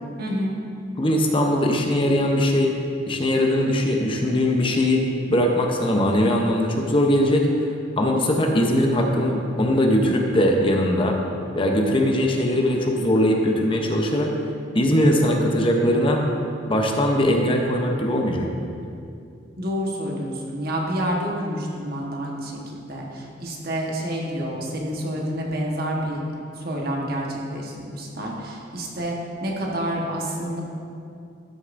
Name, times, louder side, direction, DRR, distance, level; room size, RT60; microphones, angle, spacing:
voice 1, 0.2-0.6 19.6-26.2 26.6-29.2 29.4-30.6, equal, 55° right, -1 dB, 1.2 m, -28 dB
voice 2, 1.0-2.7 3.1-7.5 8.0-11.2 11.5-14.3 14.7-16.2 16.7-18.7, left 1 dB, 30° left, 1 dB, 0.7 m, -20 dB
12.5 x 6.6 x 2.6 m, 2.5 s
head